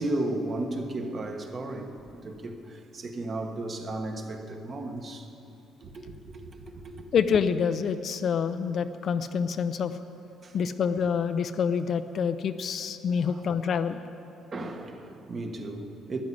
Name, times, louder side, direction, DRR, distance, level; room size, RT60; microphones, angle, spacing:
voice 1, 0.0-5.3 5.8-7.0 10.4-10.5 13.3-13.4 14.5-16.2, right 2 dB, 30° right, 1.2 m, -34 dB
voice 2, 7.1-10.0 10.5-14.0, left 6 dB, 40° left, 0.5 m, -27 dB
13.0 x 11.0 x 9.8 m
cardioid pair, 160°, 0 cm